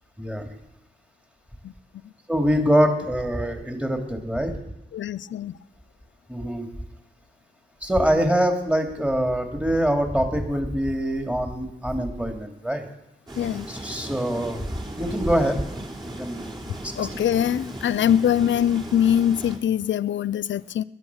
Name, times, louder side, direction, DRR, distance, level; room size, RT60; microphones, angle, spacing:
voice 1, 0.2-0.5 2.3-4.5 6.3-6.7 7.8-12.9 13.7-14.6 15.0-15.6 16.0-16.4 16.8-17.1, equal, 5° right, 3.0 m, -24 dB
voice 2, 4.9-5.5 13.4-13.7 17.0-20.8, left 10 dB, 75° left, 0.5 m, -23 dB
sound 1, 13.3-19.6, right 1 dB, 25° right, 4.0 m, -37 dB
20.0 x 11.0 x 6.4 m
cardioid pair, 55°, 19 cm